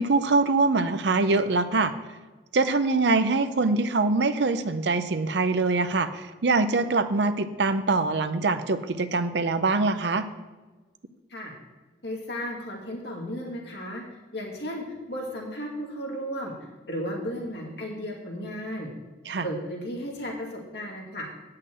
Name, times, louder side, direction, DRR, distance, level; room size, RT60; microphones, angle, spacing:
voice 1, 0.0-1.9 2.5-10.2 19.3-19.5, right 3 dB, 75° right, 10 dB, 0.6 m, -24 dB
voice 2, 12.0-14.0 14.3-16.5 16.8-18.9 19.4-21.3, equal, 70° left, -2 dB, 2.3 m, -34 dB
9.2 x 5.7 x 7.8 m, 1.2 s
head